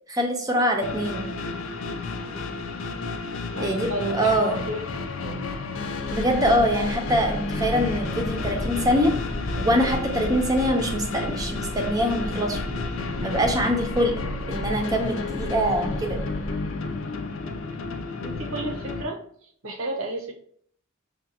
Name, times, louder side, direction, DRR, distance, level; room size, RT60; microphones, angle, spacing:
voice 1, 0.1-1.3 3.6-4.6 6.1-9.1 9.6-12.6 13.2-14.2 14.5-16.2, equal, 15° right, 3 dB, 0.6 m, -24 dB
sound 1, 0.8-19.0, left 3 dB, 65° left, 0.5 m, -32 dB
voice 2, 3.5-4.8 5.2-5.4 18.2-19.2 19.6-20.3, right 1 dB, 70° right, 1 dB, 0.8 m, -31 dB
sound 2, 6.0-16.5, left 1 dB, 15° left, 0.8 m, -34 dB
6.1 x 2.3 x 2.8 m, 0.63 s
head